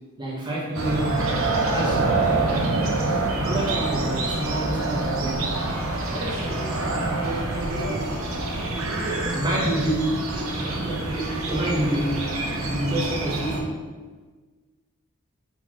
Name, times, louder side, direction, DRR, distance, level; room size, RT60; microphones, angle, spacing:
voice 1, 0.2-2.0 2.7-2.9 3.3-5.5 6.4-6.9 7.6-8.0 9.3-13.7, right 1 dB, 20° right, -5 dB, 1.1 m, -28 dB
sound 1, 0.7-13.6, right 2 dB, 90° right, 0.8 m, -26 dB
voice 2, 1.7-2.0 6.1-6.6 7.2-8.0 8.6-9.9, equal, 60° right, -5 dB, 1.3 m, -34 dB
4.3 x 4.0 x 3.0 m, 1.4 s
head